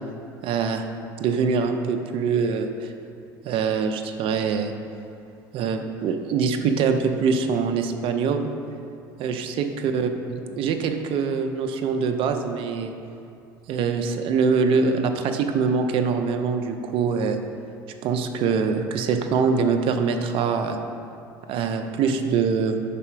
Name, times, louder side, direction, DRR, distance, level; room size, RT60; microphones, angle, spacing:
voice 1, 0.4-0.8 1.2-2.9 3.4-4.7 5.5-8.5 9.2-12.9 13.7-17.4 18.0-20.8 21.5-22.9, right 5 dB, 55° right, 6 dB, 0.6 m, -24 dB
5.5 x 4.1 x 5.0 m, 2.6 s
hypercardioid pair, 80°, 11 cm